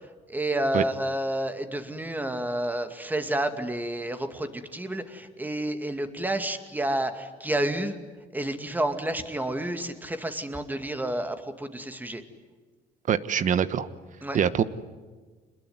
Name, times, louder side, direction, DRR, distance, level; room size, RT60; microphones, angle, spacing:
voice 1, 0.3-8.0 8.3-12.2 14.2-14.4, right 1 dB, 10° right, 7 dB, 2.3 m, -30 dB
voice 2, 13.1-13.9 14.3-14.6, right 8 dB, 50° right, 14 dB, 1.3 m, -23 dB
27.0 x 21.0 x 9.6 m, 1.4 s
cardioid pair, 110°, 17 cm